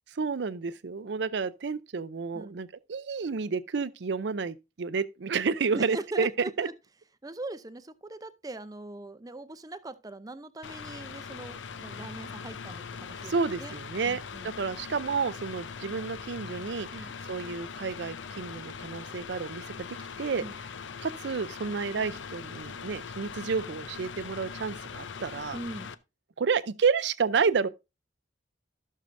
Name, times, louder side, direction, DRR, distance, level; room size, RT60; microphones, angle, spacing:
voice 1, 0.1-6.3 6.6-6.7 13.3-16.9 17.2-19.9 20.2-20.4 21.0-25.6 26.4-27.7, right 5 dB, 65° right, 0.5 m, -30 dB
voice 2, 5.7-6.7 7.2-13.3 13.6-13.7 14.0-14.5 16.9-17.1 20.4-20.5 25.5-25.9, right 2 dB, 20° right, 0.6 m, -40 dB
Mechanical fan, 10.6-25.9, left 6 dB, 80° left, 0.6 m, -41 dB
15.0 x 6.5 x 2.6 m
head